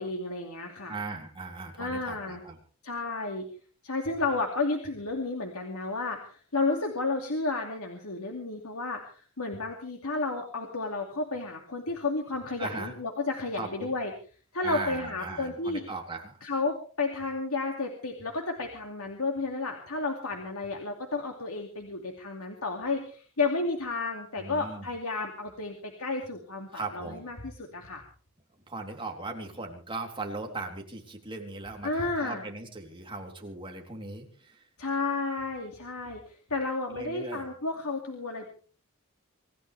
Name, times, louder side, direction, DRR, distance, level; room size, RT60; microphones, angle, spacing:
voice 1, 0.0-0.9 1.8-2.4 2.8-3.5 3.8-14.1 14.5-15.8 16.4-28.0 31.8-32.4 34.8-36.2 36.5-38.5, left 3 dB, 80° left, 2 dB, 2.6 m, -32 dB
voice 2, 0.9-2.6 12.6-12.9 13.5-13.9 14.6-16.4 24.4-24.9 26.7-27.3 28.7-34.7 36.9-37.5, right 3 dB, 25° right, 1 dB, 3.5 m, -38 dB
26.0 x 14.5 x 3.5 m, 0.40 s
head